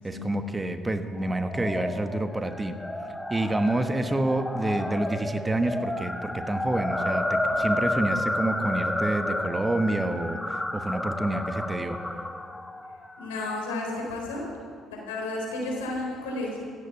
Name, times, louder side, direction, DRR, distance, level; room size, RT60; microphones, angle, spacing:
voice 1, 0.0-2.8 3.3-12.0, right 2 dB, 20° right, 8 dB, 1.3 m, -28 dB
sound 1, 1.2-13.6, left 1 dB, 10° left, 1.2 m, -31 dB
voice 2, 13.2-14.5 14.9-16.6, left 2 dB, 85° left, -1 dB, 3.9 m, -32 dB
15.0 x 9.6 x 8.0 m, 2.2 s
hypercardioid pair, 55°, 0 cm